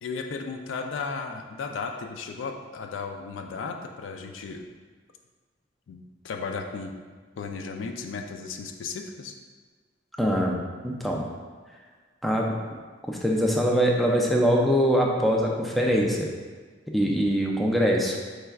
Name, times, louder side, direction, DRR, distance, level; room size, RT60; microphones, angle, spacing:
voice 1, 0.0-4.6 5.9-6.9 7.4-9.3, left 4 dB, 75° left, 4 dB, 0.4 m, -35 dB
voice 2, 10.2-11.2 12.2-12.6 13.0-16.3 16.9-18.2, equal, ahead, -1 dB, 0.3 m, -23 dB
4.5 x 3.3 x 2.3 m, 1.5 s
head